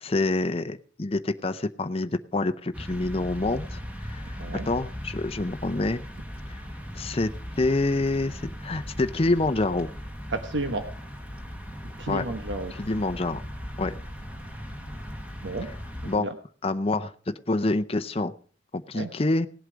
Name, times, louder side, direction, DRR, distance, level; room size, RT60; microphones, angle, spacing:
voice 1, 0.0-4.4 4.7-6.0 6.9-7.3 7.6-9.9 12.1-12.2 12.7-13.4 13.8-14.0 16.0-16.3 16.6-17.1 17.5-18.3 18.7-19.5, left 2 dB, 30° left, 10 dB, 0.7 m, -27 dB
sound 1, 2.7-16.2, equal, 10° right, 1.6 m, -38 dB
voice 2, 10.3-10.9 12.0-12.7 15.4-15.7 16.2-16.3 18.9-19.1, right 2 dB, 70° right, 7 dB, 1.2 m, -31 dB
18.0 x 8.0 x 5.1 m, 0.42 s
head